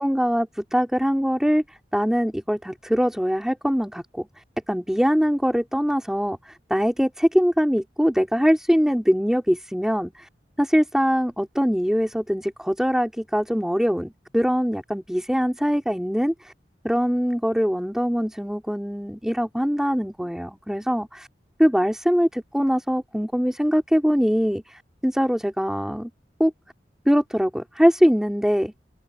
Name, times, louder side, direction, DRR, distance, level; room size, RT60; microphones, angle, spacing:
voice 1, 0.0-1.6 1.9-4.3 4.7-10.3 10.6-16.5 16.8-21.3 21.6-26.1 26.4-26.5 27.0-28.7, equal, 5° right, 4.7 m, -22 dB
open air
head